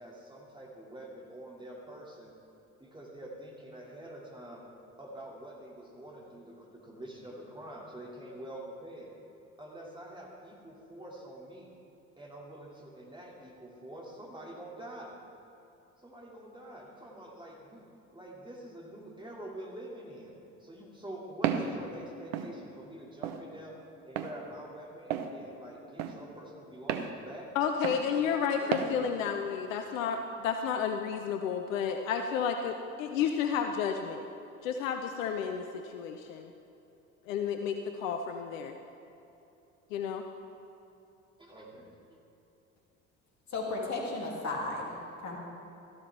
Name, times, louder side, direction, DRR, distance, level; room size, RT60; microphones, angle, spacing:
voice 1, 0.0-2.3 2.8-4.6 5.0-9.1 9.6-11.7 12.2-15.1 16.0-17.9 18.1-20.3 20.6-23.7 24.1-27.5 27.9-28.9 41.4-42.2, right 1 dB, 10° right, -2 dB, 2.4 m, -46 dB
Walk footsteps, 21.4-21.7 22.3-22.5 23.2-23.4 24.2-24.3 25.1-25.3 26.0-26.2 26.9-27.1 27.8-28.0 28.7-28.9, right 9 dB, 65° right, 0.8 m, -31 dB
voice 2, 27.5-34.3 34.6-36.5 37.3-38.8 39.9-40.2, left 7 dB, 70° left, 6 dB, 0.7 m, -31 dB
voice 3, 43.5-45.4, left 2 dB, 40° left, -1 dB, 2.6 m, -35 dB
13.5 x 12.0 x 3.4 m, 2.8 s
figure-of-eight pair, 55°, 41 cm